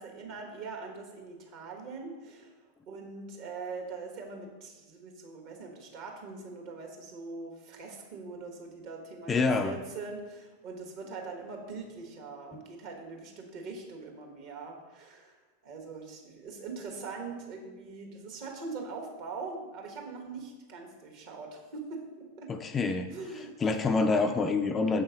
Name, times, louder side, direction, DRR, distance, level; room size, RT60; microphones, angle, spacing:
voice 1, 0.0-9.3 9.6-22.5 23.1-23.5, right 4 dB, 45° right, 1 dB, 1.3 m, -42 dB
voice 2, 9.3-9.7 22.5-23.1 23.6-25.0, left 4 dB, 20° left, 7 dB, 0.3 m, -26 dB
7.0 x 5.4 x 3.8 m, 1.2 s
figure-of-eight pair, 90°, 0 cm